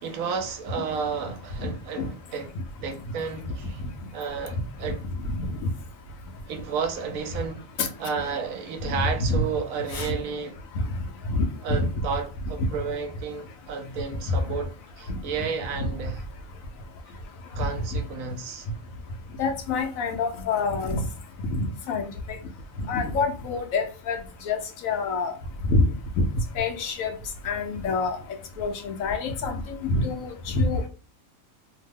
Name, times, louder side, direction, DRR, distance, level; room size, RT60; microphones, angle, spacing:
voice 1, 0.0-3.8 4.1-5.1 6.5-7.7 8.0-10.6 11.6-16.2 17.5-18.7, right 5 dB, 75° right, 1.0 m, -32 dB
voice 2, 11.3-11.9 15.8-15.9 19.4-21.0 21.5-22.1 22.9-24.2 24.5-25.3 25.7-25.9 26.2-26.3 26.6-27.1 27.4-28.2 28.6-30.9, left 3 dB, 75° left, 1.0 m, -26 dB
2.8 x 2.0 x 3.4 m
omnidirectional pair, 1.5 m